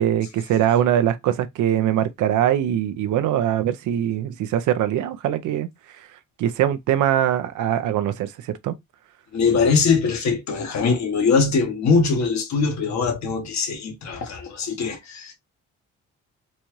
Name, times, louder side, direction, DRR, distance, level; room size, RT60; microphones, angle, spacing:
voice 1, 0.0-5.7 6.0-6.1 6.4-8.7, right 11 dB, 75° right, 0.6 m, -22 dB
voice 2, 9.3-15.3, left 5 dB, 65° left, 1.3 m, -22 dB
4.1 x 2.4 x 3.0 m
cardioid pair, 90°, 30 cm